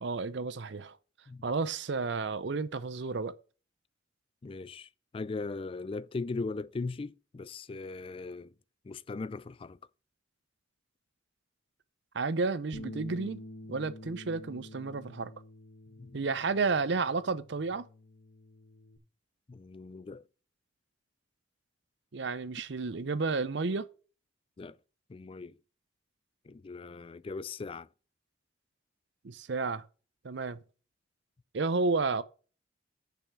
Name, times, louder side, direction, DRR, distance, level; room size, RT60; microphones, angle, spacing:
voice 1, 0.0-1.0 1.4-3.3 12.1-13.4 13.7-15.3 16.1-17.8 22.1-23.9 29.2-29.8 30.2-30.6 31.5-32.2, right 4 dB, 60° right, 0.6 m, -31 dB
voice 2, 4.4-8.5 8.8-9.8 16.0-16.2 19.5-20.2 24.6-24.8 25.1-25.5 26.4-27.9, left 3 dB, 30° left, 0.3 m, -39 dB
Bass guitar, 12.7-19.0, left 1 dB, 85° left, 1.0 m, -48 dB
7.1 x 5.7 x 6.0 m
head